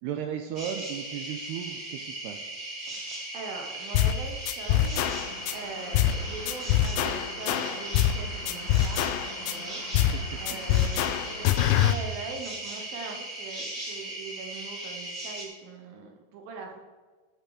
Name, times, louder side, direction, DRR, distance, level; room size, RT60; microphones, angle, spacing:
voice 1, 0.0-2.5 10.1-10.8, right 9 dB, 90° right, 5 dB, 2.3 m, -36 dB
sound 1, 0.5-15.4, right 1 dB, 30° right, 2.0 m, -38 dB
voice 2, 2.8-16.8, right 4 dB, 75° right, 2 dB, 2.2 m, -42 dB
sound 2, 3.9-4.2 4.5-5.5 5.9-6.2 6.5-8.2 8.5-9.5 9.9-10.2 10.5-11.9, left 12 dB, 85° left, 2.7 m, -24 dB
sound 3, 5.2-11.5, left 3 dB, 65° left, 1.7 m, -45 dB
15.5 x 6.6 x 4.8 m, 1.4 s
omnidirectional pair, 5.4 m